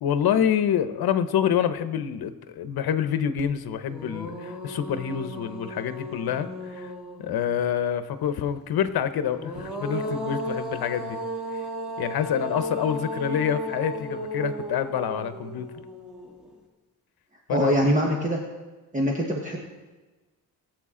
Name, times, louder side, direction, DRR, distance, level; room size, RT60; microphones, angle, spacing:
voice 1, 0.0-6.9 7.2-11.2 11.5-11.6 12.0-15.7 17.5-17.7, left 9 dB, 80° left, 11 dB, 0.9 m, -27 dB
sound 1, 3.4-3.5 3.9-7.5 9.2-16.5, equal, ahead, 2.1 m, -34 dB
voice 2, 17.5-18.4 18.9-19.6, equal, 20° right, -1 dB, 1.3 m, -23 dB
20.5 x 7.8 x 3.8 m, 1.2 s
cardioid pair, 130°, 37 cm